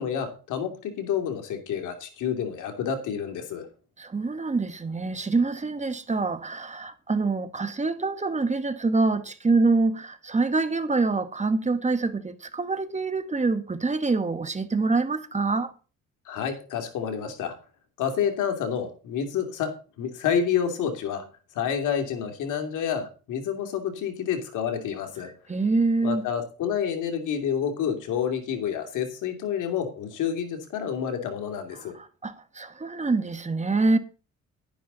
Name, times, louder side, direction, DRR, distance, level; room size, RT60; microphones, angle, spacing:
voice 1, 0.0-3.7 16.3-17.5 18.0-21.3 21.5-25.3 26.0-31.9, left 8 dB, 85° left, 2.8 m, -29 dB
voice 2, 4.0-15.7 25.5-26.3 31.8-34.0, right 3 dB, 25° right, 1.4 m, -25 dB
11.5 x 10.0 x 4.0 m
cardioid pair, 90°, 30 cm